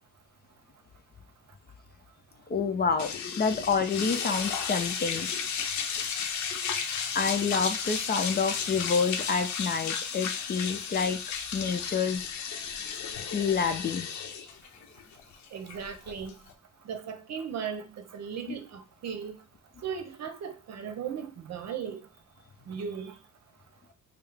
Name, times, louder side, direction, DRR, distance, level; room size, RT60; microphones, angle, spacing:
voice 1, 2.5-5.4 6.5-6.8 7.1-11.2 11.5-12.3 13.3-14.1 18.5-18.6, left 5 dB, 35° left, 0.5 m, -28 dB
sound 1, 3.0-16.5, left 6 dB, 70° left, 0.6 m, -33 dB
voice 2, 15.5-16.4 16.8-19.4 19.8-22.0 22.7-23.1, right 7 dB, 60° right, 0.7 m, -37 dB
4.5 x 2.0 x 3.3 m
cardioid pair, 90°, 30 cm